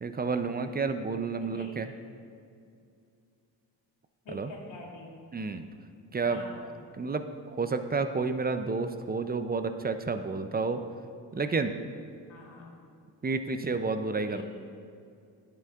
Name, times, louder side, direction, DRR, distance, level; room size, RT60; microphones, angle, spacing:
voice 1, 0.0-1.9 4.3-4.5 5.3-5.6 6.1-6.4 7.0-10.8 11.3-11.8 13.2-14.4, right 4 dB, 20° right, 9 dB, 0.5 m, -30 dB
voice 2, 1.4-1.7 4.2-5.2 6.2-6.7 12.3-12.9 14.3-14.4, left 2 dB, 70° left, -1 dB, 1.7 m, -46 dB
10.5 x 6.8 x 2.5 m, 2.4 s
supercardioid pair, 55°, 46 cm